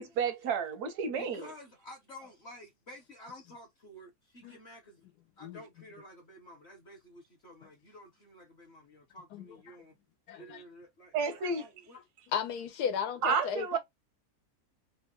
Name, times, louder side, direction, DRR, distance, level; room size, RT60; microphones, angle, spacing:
voice 1, 0.0-1.5 11.1-11.7 13.2-13.8, right 5 dB, 85° right, 1.2 m, -31 dB
voice 2, 1.1-5.1 5.4-10.0 10.4-12.0, equal, 50° left, 1.1 m, -51 dB
voice 3, 10.3-10.6 12.3-13.8, left 8 dB, 85° left, 1.2 m, -34 dB
3.3 x 2.2 x 2.8 m
omnidirectional pair, 1.7 m